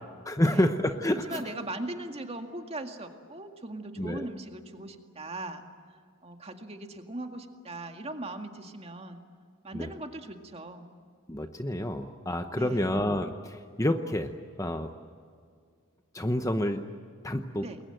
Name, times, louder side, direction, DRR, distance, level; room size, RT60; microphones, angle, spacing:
voice 1, 0.2-1.5 4.0-4.3 9.7-9.9 11.3-14.9 16.1-16.9 17.2-17.7, left 1 dB, 15° left, 7 dB, 0.9 m, -29 dB
voice 2, 1.1-5.6 6.2-9.2 9.6-10.9 12.5-13.0 17.6-17.8, right 2 dB, 30° right, 5 dB, 2.0 m, -39 dB
28.5 x 22.0 x 7.9 m, 2.1 s
head